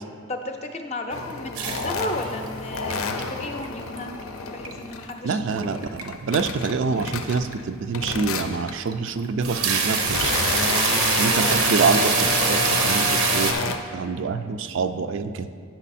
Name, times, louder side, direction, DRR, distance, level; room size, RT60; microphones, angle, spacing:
voice 1, 0.3-4.1 4.5-6.0 10.8-11.7, left 1 dB, 30° left, 5 dB, 0.5 m, -34 dB
sound 1, 1.1-5.2 5.6-7.6 7.9-8.8 9.5-13.8, left 4 dB, 80° left, 0.6 m, -29 dB
sound 2, 1.5-2.5 2.7-3.2 3.6-4.2 4.6-4.7 5.6-6.0 6.3-6.5 7.0-7.1 7.5-7.6 8.1-8.2 8.7-8.9 9.2-13.5, right 5 dB, 90° right, 0.8 m, -23 dB
voice 2, 5.2-10.3 11.2-15.5, right 4 dB, 60° right, 9 dB, 0.3 m, -26 dB
9.1 x 6.0 x 4.2 m, 2.2 s
head